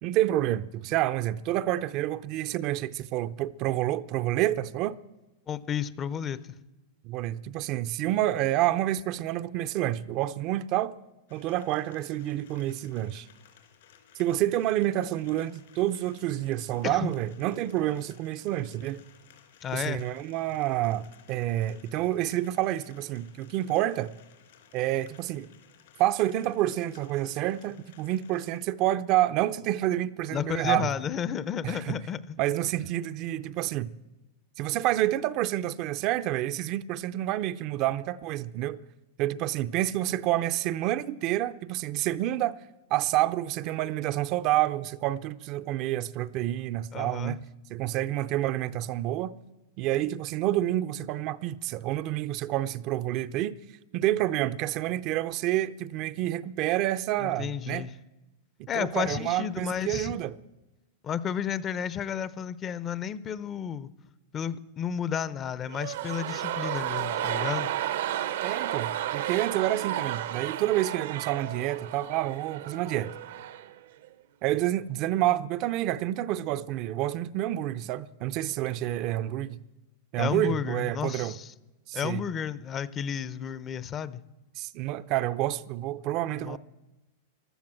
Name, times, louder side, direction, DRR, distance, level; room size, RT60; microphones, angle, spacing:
voice 1, 0.0-5.0 7.0-11.0 11.3-13.3 14.2-19.0 19.7-24.1 24.7-25.5 26.0-30.9 31.6-32.0 32.4-33.9 34.6-38.8 39.2-42.6 42.9-47.4 47.7-49.3 49.8-53.5 53.9-57.9 58.7-60.3 68.4-73.2 74.4-79.6 80.1-81.4 81.9-82.2 84.6-86.6, right 14 dB, 40° right, 0.5 m, -28 dB
voice 2, 5.5-6.5 16.8-17.1 19.6-20.0 30.3-32.4 46.9-47.4 57.2-57.9 58.7-60.1 61.0-63.9 64.3-67.7 80.2-81.5 81.9-84.2 86.3-86.6, left 8 dB, 25° left, 0.6 m, -32 dB
sound 1, 11.3-28.6, left 9 dB, 75° left, 3.5 m, -58 dB
sound 2, 65.7-73.8 74.0-74.1, right 12 dB, 75° right, 1.0 m, -32 dB
15.0 x 12.0 x 7.5 m
supercardioid pair, 140°, 0 cm